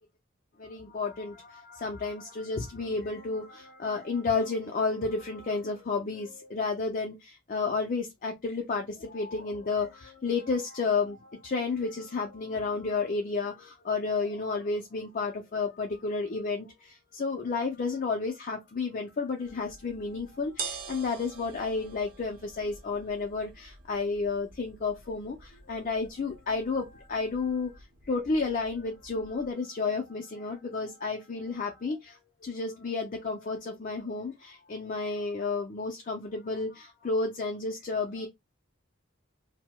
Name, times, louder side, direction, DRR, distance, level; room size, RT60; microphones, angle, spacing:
voice 1, 0.6-38.3, left 4 dB, 45° left, 0.5 m, -32 dB
sound 1, 19.5-29.5, right 5 dB, 45° right, 0.7 m, -46 dB
4.6 x 2.1 x 2.2 m
head